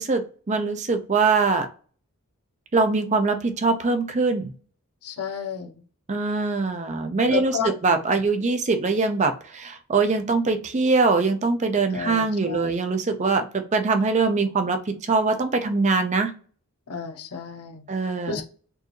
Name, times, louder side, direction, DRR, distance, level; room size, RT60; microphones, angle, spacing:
voice 1, 0.0-1.7 2.7-4.5 6.1-16.3 17.9-18.4, right 4 dB, 30° right, 0.5 m, -23 dB
voice 2, 5.0-5.7 7.3-7.7 11.9-12.7 16.9-17.8 18.3-18.4, left 6 dB, 90° left, 0.8 m, -31 dB
4.5 x 2.6 x 3.0 m
head